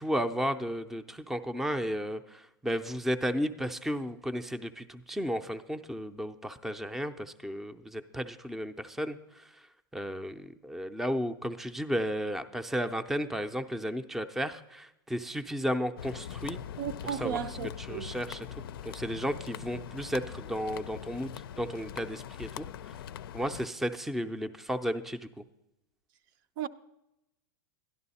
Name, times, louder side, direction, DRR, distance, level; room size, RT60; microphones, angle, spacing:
voice 1, 0.0-9.5 9.9-16.6 17.0-17.4 17.8-18.5 18.8-22.7 23.3-25.2, equal, ahead, 0.5 m, -33 dB
sound 1, 16.0-23.7, left 9 dB, 80° left, 0.4 m, -42 dB
voice 2, 16.8-18.1 26.6-26.7, right 10 dB, 60° right, 0.5 m, -35 dB
12.0 x 11.5 x 4.1 m
hypercardioid pair, 120°, 12 cm